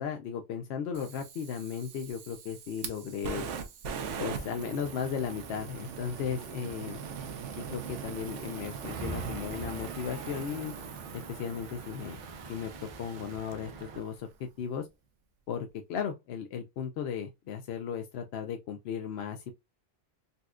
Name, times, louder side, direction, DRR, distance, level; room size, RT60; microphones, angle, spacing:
voice 1, 0.0-3.5 4.2-7.0 7.6-10.7 11.1-12.2 12.5-14.3 14.6-14.9 15.5-19.5, left 7 dB, 65° left, 0.7 m, -36 dB
Fire, 0.9-14.1, right 6 dB, 80° right, 1.0 m, -41 dB
sound 1, 8.8-14.0, right 3 dB, 55° right, 0.3 m, -43 dB
4.1 x 2.3 x 2.4 m
omnidirectional pair, 1.2 m